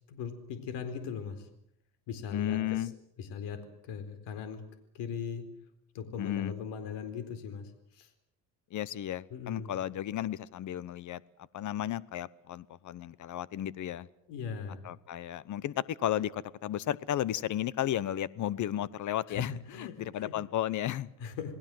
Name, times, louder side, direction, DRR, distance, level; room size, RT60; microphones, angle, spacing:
voice 1, 0.1-1.5 2.1-2.9 3.2-4.7 4.9-5.5 5.9-8.1 9.3-9.7 14.3-14.9 19.3-20.4 21.2-21.5, left 6 dB, 80° left, 10 dB, 4.3 m, -39 dB
voice 2, 2.3-2.9 6.2-6.5 8.7-11.2 11.5-14.1 14.8-21.1, left 12 dB, 45° left, 20 dB, 1.0 m, -34 dB
28.5 x 19.5 x 7.8 m, 0.75 s
cardioid pair, 135°, 41 cm